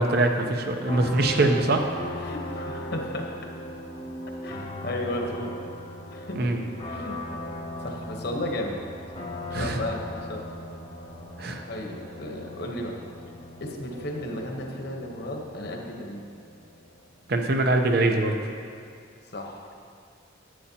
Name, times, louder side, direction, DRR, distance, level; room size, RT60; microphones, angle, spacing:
voice 1, 0.0-1.8 6.3-6.6 9.5-9.8 11.4-11.6 17.3-18.4, right 2 dB, 50° right, 4 dB, 0.7 m, -23 dB
sound 1, 0.9-17.4, equal, 30° left, 0.7 m, -38 dB
voice 2, 2.2-3.3 4.4-5.5 6.1-6.5 6.9-7.2 7.8-8.8 9.5-10.4 11.7-13.0 13.6-16.2 19.3-19.7, left 1 dB, 55° left, 1 dB, 1.0 m, -34 dB
11.0 x 8.7 x 2.8 m, 2.4 s
head